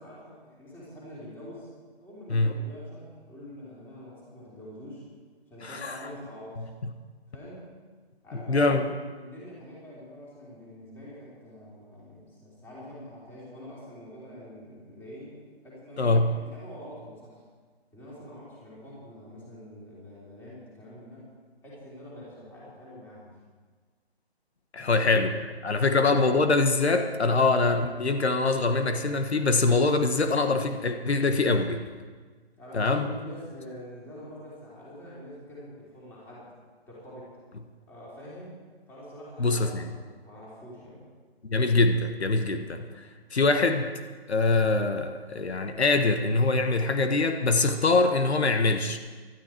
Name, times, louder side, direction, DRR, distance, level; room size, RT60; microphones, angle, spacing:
voice 1, 0.0-1.7 2.0-5.0 5.5-6.7 7.3-7.7 8.2-15.4 15.6-17.4 17.9-21.3 21.6-23.4 24.8-25.3 32.6-36.5 36.9-37.3 37.9-38.6 38.9-40.0 40.2-41.1, equal, 5° left, -7 dB, 3.4 m, -45 dB
voice 2, 5.6-6.0 8.5-8.9 16.0-16.3 24.7-25.3 25.6-31.8 32.7-33.1 39.4-39.9 41.4-43.9 44.3-49.0, left 3 dB, 80° left, 6 dB, 1.5 m, -24 dB
18.0 x 12.5 x 4.5 m, 1.5 s
hypercardioid pair, 160°, 32 cm